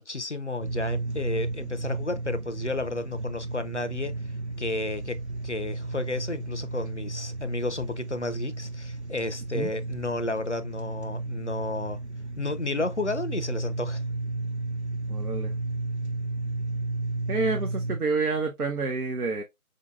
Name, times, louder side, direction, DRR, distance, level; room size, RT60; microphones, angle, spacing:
voice 1, 0.0-4.1 4.6-12.0 12.4-14.0, left 2 dB, 55° left, 0.5 m, -32 dB
sound 1, 0.6-18.0, right 2 dB, 50° right, 0.7 m, -33 dB
voice 2, 15.1-15.5 17.3-19.4, right 3 dB, 80° right, 0.8 m, -28 dB
5.0 x 2.8 x 2.2 m
figure-of-eight pair, 170°, 44 cm